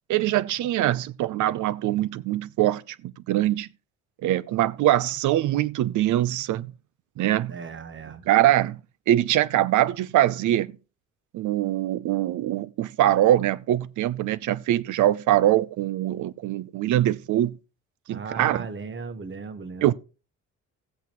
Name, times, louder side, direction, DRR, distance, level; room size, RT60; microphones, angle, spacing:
voice 1, 0.1-3.7 4.2-6.7 7.2-7.6 8.3-8.8 9.1-10.7 11.3-17.6 18.1-18.7 19.8-19.9, right 13 dB, 80° right, 0.7 m, -23 dB
voice 2, 7.5-8.2 18.1-19.9, right 4 dB, 40° right, 1.4 m, -36 dB
15.5 x 8.1 x 3.1 m
cardioid pair, 90°, 30 cm